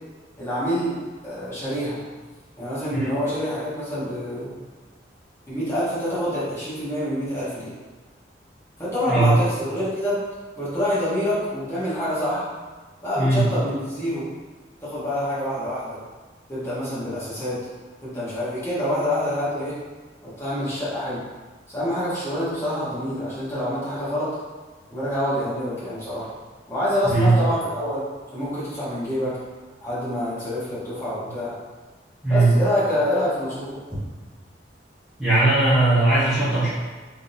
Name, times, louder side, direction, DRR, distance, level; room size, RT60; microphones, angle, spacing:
voice 1, 0.4-2.0 2.6-4.5 5.5-7.7 8.8-10.2 10.5-12.5 13.0-14.3 14.8-16.0 16.5-17.6 18.0-19.8 20.2-21.2 21.7-24.4 24.9-26.3 26.7-28.0 28.3-29.4 29.8-31.5 32.3-33.8, equal, 15° left, -11 dB, 1.4 m, -26 dB
voice 2, 35.2-36.7, right 2 dB, 5° right, -15 dB, 1.0 m, -19 dB
3.8 x 3.2 x 2.6 m, 1.4 s
head